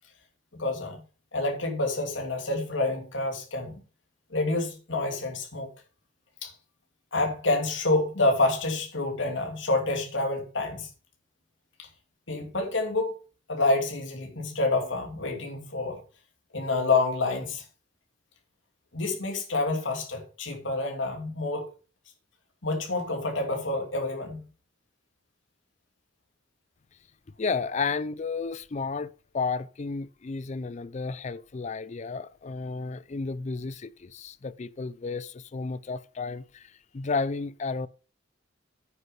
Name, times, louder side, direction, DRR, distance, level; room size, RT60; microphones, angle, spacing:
voice 1, 0.5-1.0 1.3-3.7 4.3-5.7 6.4-6.5 7.1-10.9 11.8-11.9 12.3-13.1 13.5-16.0 16.5-17.6 18.9-21.6 22.6-24.4, left 2 dB, 70° left, 2.8 m, -28 dB
voice 2, 27.4-37.9, left 4 dB, 35° left, 0.5 m, -32 dB
9.3 x 6.5 x 5.6 m
head